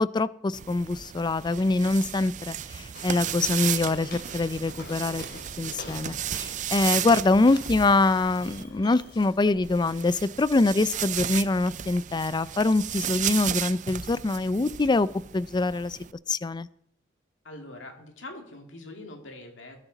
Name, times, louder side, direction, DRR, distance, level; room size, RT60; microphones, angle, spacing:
voice 1, 0.0-5.2 5.6-16.0 16.3-16.7, left 3 dB, 25° left, 18 dB, 0.4 m, -24 dB
sound 1, 0.5-8.6 9.6-16.1, right 10 dB, 40° right, 0.4 m, -34 dB
Walk footsteps, 2.9-9.6, left 2 dB, 60° left, 3.7 m, -46 dB
Coin (dropping), 3.1-15.4, right 2 dB, 60° right, 4.5 m, -55 dB
voice 2, 17.4-19.8, left 2 dB, 85° left, 3 dB, 2.3 m, -43 dB
20.5 x 9.6 x 4.0 m, 0.72 s
head